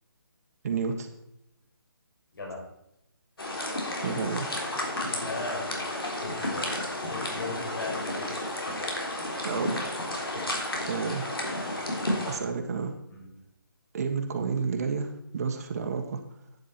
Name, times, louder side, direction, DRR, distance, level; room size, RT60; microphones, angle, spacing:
voice 1, 0.6-1.1 4.0-4.5 4.7-5.0 9.4-10.4 10.9-11.3 12.3-12.9 13.9-16.2, right 5 dB, 45° right, 4 dB, 1.5 m, -31 dB
sound 1, 3.4-12.4, left 1 dB, 85° left, 3.7 m, -32 dB
voice 2, 5.2-8.8 9.5-9.6 12.1-12.6 13.1-13.3, left 3 dB, 70° left, -1 dB, 5.3 m, -39 dB
11.0 x 9.4 x 4.4 m, 0.81 s
figure-of-eight pair, 155°, 12 cm